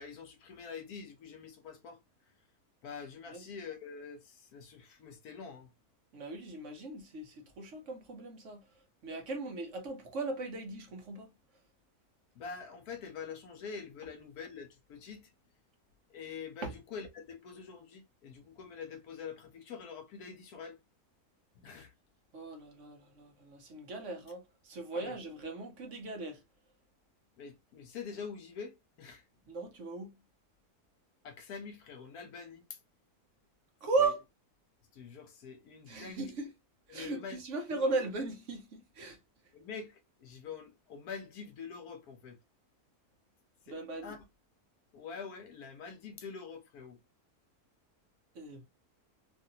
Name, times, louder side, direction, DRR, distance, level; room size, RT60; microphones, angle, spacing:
voice 1, 0.0-2.0 2.8-5.7 12.3-15.3 16.1-20.8 21.6-21.9 24.9-25.2 27.4-29.2 31.2-32.8 34.0-34.1 34.9-36.2 36.9-37.4 37.7-37.9 39.5-42.4 43.7-43.8 44.0-44.2 44.9-47.0, left 6 dB, 80° left, 1.2 m, -45 dB
voice 2, 6.1-8.6 9.0-11.3 16.6-16.7 22.3-26.4 29.5-30.2 33.8-34.2 35.9-36.5 36.9-39.2 43.7-44.2 48.3-48.6, right 3 dB, 60° right, 1.0 m, -37 dB
3.0 x 2.5 x 2.7 m
omnidirectional pair, 1.6 m